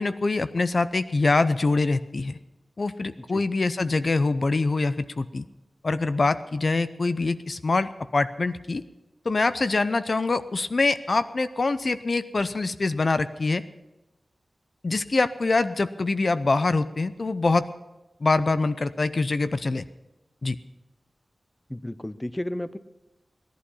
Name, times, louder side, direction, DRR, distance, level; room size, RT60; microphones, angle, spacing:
voice 1, 0.0-2.4 2.8-5.5 5.8-8.8 9.2-13.6 14.8-17.7 18.2-19.8 20.4-20.6, left 3 dB, 55° left, 13 dB, 0.6 m, -24 dB
voice 2, 21.7-22.8, left 1 dB, 15° left, 14 dB, 0.6 m, -32 dB
19.5 x 11.5 x 5.6 m, 1.0 s
wide cardioid pair, 80°, 0 cm